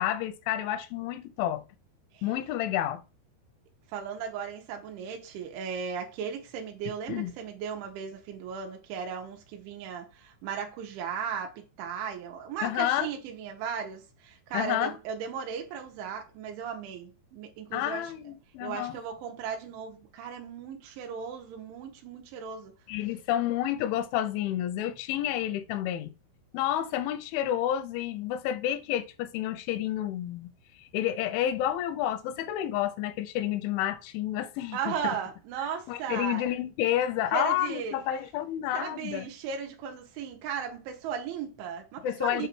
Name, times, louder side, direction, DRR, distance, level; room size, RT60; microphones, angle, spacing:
voice 1, 0.0-1.6 2.2-3.0 7.1-7.3 12.6-13.1 14.5-15.0 17.7-19.0 22.9-26.1 26.5-30.5 30.8-35.2 35.9-39.3 42.0-42.5, left 12 dB, 85° left, 3.0 m, -30 dB
voice 2, 3.9-18.1 18.6-22.7 34.7-36.5 37.3-38.0 38.7-42.5, right 7 dB, 80° right, 3.5 m, -36 dB
8.0 x 2.7 x 6.0 m
omnidirectional pair, 5.4 m